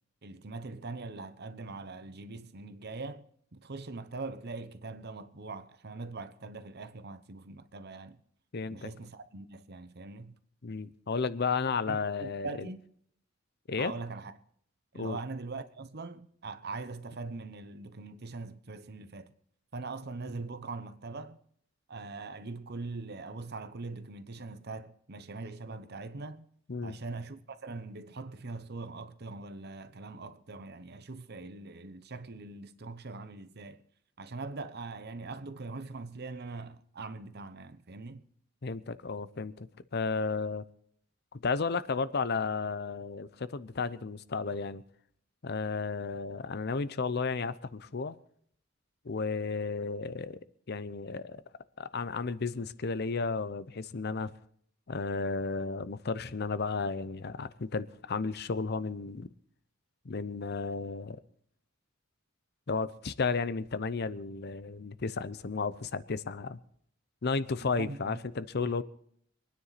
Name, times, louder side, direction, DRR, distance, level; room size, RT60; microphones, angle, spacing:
voice 1, 0.2-8.2 8.7-10.4 11.9-12.8 13.8-14.3 14.9-19.3 19.7-21.4 21.9-26.4 26.8-33.8 34.2-38.2 67.6-68.2 68.6-68.8, right 3 dB, 55° right, 0.9 m, -42 dB
voice 2, 8.5-8.9 10.6-12.7 13.7-13.9 14.9-15.2 26.7-27.0 38.6-40.6 41.4-44.8 45.4-48.2 49.0-50.4 50.7-51.4 51.8-54.3 54.9-59.3 60.0-61.2 62.7-66.6 67.2-68.8, left 4 dB, 55° left, 0.7 m, -33 dB
25.5 x 9.8 x 4.1 m
head